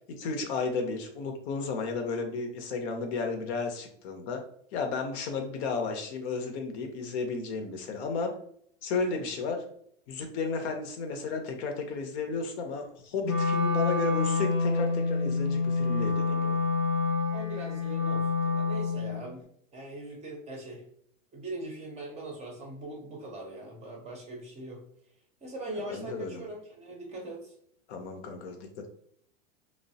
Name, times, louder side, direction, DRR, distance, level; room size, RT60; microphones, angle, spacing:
voice 1, 0.2-4.4 4.7-8.3 8.8-9.6 10.1-16.6 25.7-26.4 27.9-28.9, left 4 dB, 60° left, 5 dB, 0.7 m, -33 dB
Wind instrument woodwind instrument, 13.2-19.2, left 4 dB, 90° left, 1.1 m, -27 dB
voice 2, 17.3-19.4 19.7-20.8 21.3-24.8 25.4-27.5, right 1 dB, 20° right, 0 dB, 0.6 m, -41 dB
3.0 x 2.0 x 2.7 m, 0.66 s
supercardioid pair, 130°, 38 cm